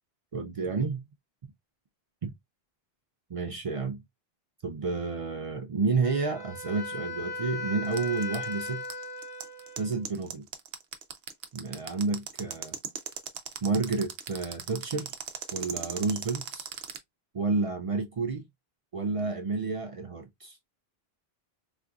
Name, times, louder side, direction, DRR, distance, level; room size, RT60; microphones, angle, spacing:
voice 1, 0.3-1.1 2.2-2.3 3.3-4.0 4.6-9.0 9.8-10.5 11.5-12.8 13.6-15.1 15.5-16.7 17.3-18.5 18.9-20.6, right 4 dB, 50° right, 0.4 m, -30 dB
Wind instrument woodwind instrument, 6.0-10.1, left 3 dB, 20° right, 1.0 m, -37 dB
sound 1, 7.9-17.0, right 9 dB, 75° right, 0.9 m, -37 dB
4.2 x 2.5 x 2.3 m
omnidirectional pair, 1.1 m